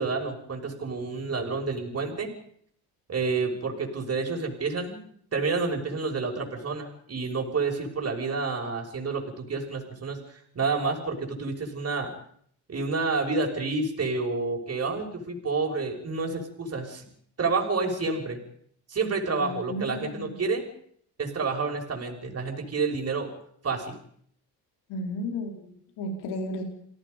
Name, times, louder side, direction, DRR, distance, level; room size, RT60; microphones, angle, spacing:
voice 1, 0.0-2.3 3.1-5.1 5.3-12.1 12.7-17.0 17.4-18.4 18.9-20.7 21.2-23.3 23.6-24.0, right 4 dB, 35° right, 1 dB, 6.0 m, -29 dB
voice 2, 19.4-20.4 24.9-26.6, left 1 dB, 75° left, 3 dB, 4.4 m, -34 dB
29.5 x 18.0 x 5.3 m, 0.64 s
supercardioid pair, 75°, 40 cm